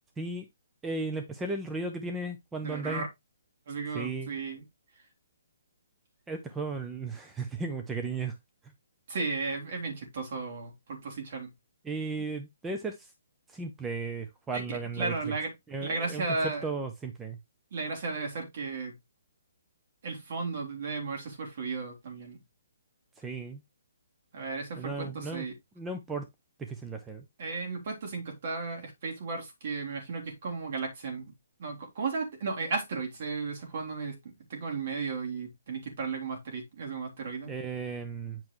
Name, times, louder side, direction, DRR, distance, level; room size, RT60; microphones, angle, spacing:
voice 1, 0.8-3.0 3.9-4.4 6.3-8.3 11.8-13.1 13.5-15.1 15.7-16.3 16.6-17.4 23.2-23.6 24.8-25.5 25.8-26.3 26.6-27.2 37.5-38.4, right 3 dB, 10° right, 0.7 m, -35 dB
voice 2, 2.6-3.1 3.7-4.6 9.1-11.5 14.5-15.5 15.8-16.6 17.7-18.9 20.0-22.4 24.3-25.5 27.4-31.3 31.6-37.5, right 4 dB, 50° right, 3.5 m, -34 dB
8.6 x 5.9 x 3.2 m
hypercardioid pair, 160°, 0 cm